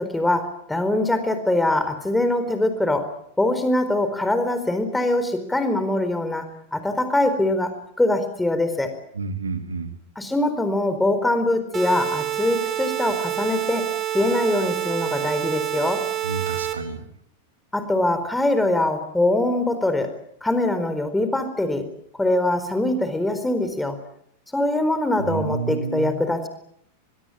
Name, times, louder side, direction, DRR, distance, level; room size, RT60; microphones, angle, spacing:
voice 1, 0.0-3.1 3.4-6.4 6.7-8.9 10.2-13.9 14.1-16.1 17.7-20.1 20.4-21.8 22.2-23.9 24.5-26.5, left 1 dB, 5° left, 9 dB, 4.3 m, -23 dB
voice 2, 9.2-9.9 16.2-17.0 25.2-26.2, right 4 dB, 75° right, 8 dB, 3.1 m, -29 dB
sound 1, 11.7-16.7, right 11 dB, 20° right, 4.2 m, -27 dB
23.0 x 22.5 x 8.6 m, 0.70 s
figure-of-eight pair, 90°, 0 cm